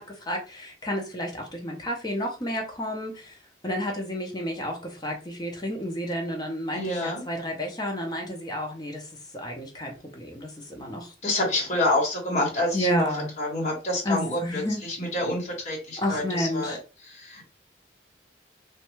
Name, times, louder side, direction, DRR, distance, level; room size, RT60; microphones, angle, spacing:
voice 1, 0.0-3.4 3.6-11.1 12.7-13.3 14.0-14.8 16.0-16.8, equal, 20° left, 0.6 m, -31 dB
voice 2, 6.7-7.2 11.2-13.0 13.4-14.6 15.0-16.8 17.2-17.5, left 1 dB, 35° left, 1.2 m, -27 dB
3.2 x 2.2 x 3.0 m
head